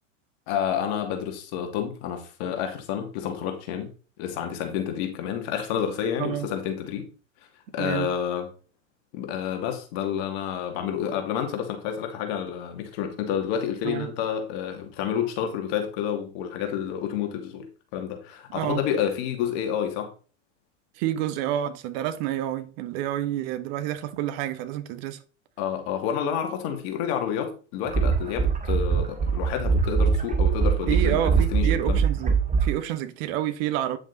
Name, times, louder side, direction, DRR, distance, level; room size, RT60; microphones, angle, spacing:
voice 1, 0.5-3.9 4.2-7.1 7.7-8.5 9.1-17.7 17.9-20.1 25.6-32.0, left 8 dB, 55° left, 2.6 m, -29 dB
voice 2, 7.8-8.1 13.8-14.1 18.5-18.8 20.9-25.2 30.9-34.0, right 12 dB, 50° right, 1.5 m, -29 dB
sound 1, 27.9-32.7, right 5 dB, 20° right, 2.2 m, -23 dB
9.9 x 6.2 x 4.1 m
hypercardioid pair, 95°, 38 cm